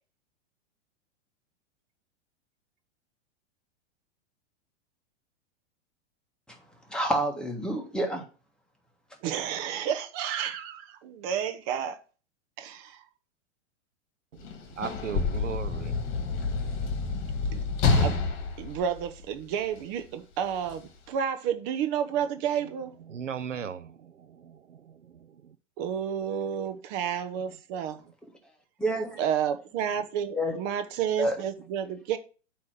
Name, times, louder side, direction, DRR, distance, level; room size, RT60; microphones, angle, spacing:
voice 1, 6.9-8.2 28.8-29.2 30.3-30.6 31.2-31.4, right 1 dB, ahead, 1.5 m, -28 dB
voice 2, 9.2-12.0 12.6-13.0 17.5-17.6 17.9-18.2 18.6-22.9 25.8-28.0 29.2-32.2, right 8 dB, 40° right, 0.9 m, -31 dB
voice 3, 14.3-16.2 23.1-25.6, right 8 dB, 90° right, 0.6 m, -38 dB
Sliding door / Slam, 14.4-19.8 20.7-20.8, left 4 dB, 35° left, 1.7 m, -28 dB
8.3 x 3.2 x 6.3 m
hypercardioid pair, 105°, 36 cm